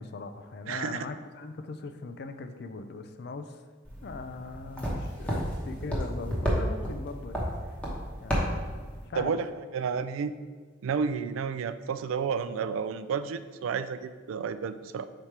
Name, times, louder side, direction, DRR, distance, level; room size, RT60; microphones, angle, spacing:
voice 1, 0.0-3.6 4.0-7.4 7.6-7.8 8.2-8.6 9.1-9.4, left 3 dB, 55° left, 8 dB, 0.4 m, -40 dB
voice 2, 0.7-1.1 9.2-9.5 9.7-10.3 10.8-15.1, right 6 dB, 85° right, 12 dB, 0.3 m, -31 dB
sound 1, 3.9-9.1, equal, 5° left, 0.9 m, -32 dB
5.1 x 4.3 x 4.6 m, 1.5 s
head